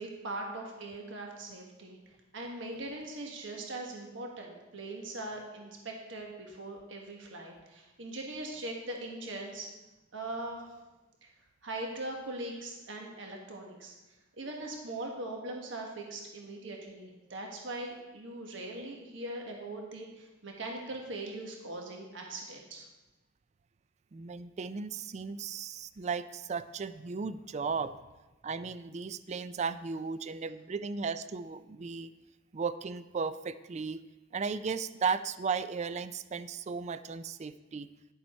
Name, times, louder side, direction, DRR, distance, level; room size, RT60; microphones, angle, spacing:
voice 1, 0.0-2.0 2.3-9.7 10.1-10.8 11.2-11.3 11.6-13.9 14.4-22.9, right 2 dB, 70° right, 1 dB, 1.4 m, -41 dB
voice 2, 24.1-28.0 28.4-32.1 32.5-34.0 34.3-37.9, right 5 dB, 35° right, 14 dB, 0.4 m, -35 dB
10.5 x 7.1 x 4.3 m, 1.1 s
head